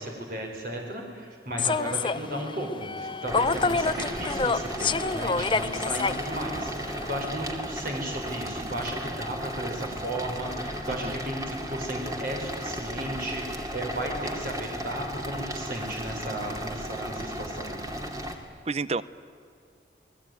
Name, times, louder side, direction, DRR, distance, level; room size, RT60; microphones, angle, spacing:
voice 1, 0.0-17.7, right 1 dB, 50° right, 1 dB, 5.0 m, -34 dB
Human voice / Subway metro underground, 1.6-7.3, left 4 dB, 25° left, 0.6 m, -28 dB
sound 1, 3.3-18.4, equal, 20° right, 2.5 m, -35 dB
voice 2, 18.7-19.0, right 4 dB, 35° right, 16 dB, 0.8 m, -29 dB
29.0 x 20.0 x 9.5 m, 2.3 s
head